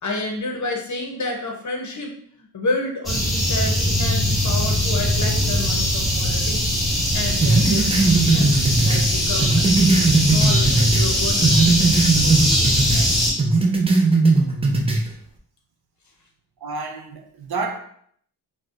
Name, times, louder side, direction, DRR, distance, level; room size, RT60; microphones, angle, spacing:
voice 1, 0.0-6.7 7.1-8.5 8.8-13.1, left 2 dB, 45° left, 2 dB, 0.7 m, -30 dB
sound 1, 3.1-13.3, equal, ahead, 0.8 m, -21 dB
sound 2, 7.4-11.1 11.4-13.1 13.4-15.0, right 3 dB, 15° right, 0.3 m, -18 dB
voice 2, 16.6-17.8, right 3 dB, 60° right, 5 dB, 0.6 m, -29 dB
4.2 x 2.1 x 2.4 m, 0.63 s
wide cardioid pair, 100°, 42 cm